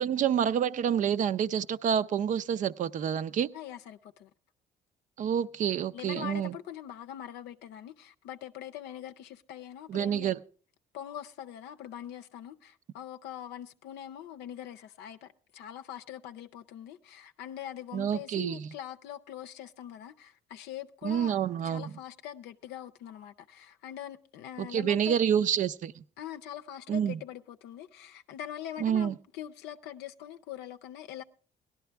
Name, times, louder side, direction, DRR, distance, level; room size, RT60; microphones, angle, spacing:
voice 1, 0.0-3.5 5.2-6.6 9.9-10.4 17.9-18.7 21.0-21.9 24.6-26.0 26.9-27.2 28.8-29.1, right 8 dB, 50° right, 0.5 m, -28 dB
voice 2, 3.5-4.3 5.9-10.3 10.9-25.1 26.2-31.2, left 10 dB, 80° left, 0.5 m, -43 dB
17.5 x 11.5 x 3.4 m
cardioid pair, 110°, 17 cm